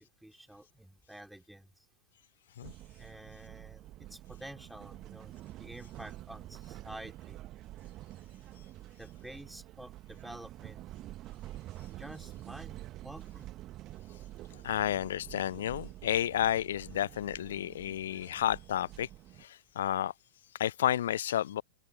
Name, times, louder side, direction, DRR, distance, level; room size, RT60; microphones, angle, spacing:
voice 1, 0.2-1.7 3.0-7.4 9.0-11.1 12.0-12.8 13.0-13.5, right 1 dB, ahead, 4.2 m, -49 dB
sound 1, 2.6-19.5, right 15 dB, 35° right, 1.7 m, -48 dB
voice 2, 14.6-19.1 19.4-19.5 19.8-20.1 20.6-21.6, left 11 dB, 60° left, 0.7 m, -31 dB
open air
figure-of-eight pair, 90°, 0 cm